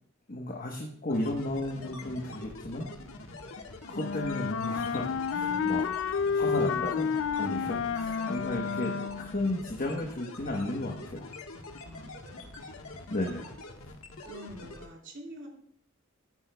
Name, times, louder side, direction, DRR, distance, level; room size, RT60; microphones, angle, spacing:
voice 1, 0.3-2.9 3.9-5.8 6.3-11.3 13.1-13.5, left 1 dB, 40° left, 0 dB, 1.1 m, -34 dB
sound 1, 1.1-14.9, left 2 dB, 85° left, 1.4 m, -45 dB
Wind instrument woodwind instrument, 3.9-9.4, left 6 dB, 60° left, 0.4 m, -30 dB
voice 2, 5.3-6.0 7.4-8.7 11.8-12.6 14.2-15.5, equal, 60° right, 0 dB, 2.7 m, -47 dB
14.0 x 10.0 x 2.3 m, 0.66 s
head